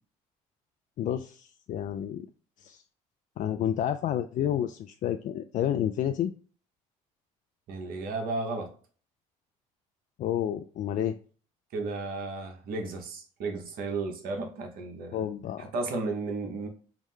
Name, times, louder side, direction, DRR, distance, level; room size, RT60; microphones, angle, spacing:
voice 1, 1.0-2.3 2.6-2.8 3.4-6.3 10.2-11.2 15.1-15.7, left 10 dB, 55° left, 0.4 m, -30 dB
voice 2, 7.7-8.7 11.7-15.2 15.6-16.7, right 3 dB, 65° right, 1.0 m, -34 dB
4.7 x 2.1 x 3.6 m
supercardioid pair, 70°, 16 cm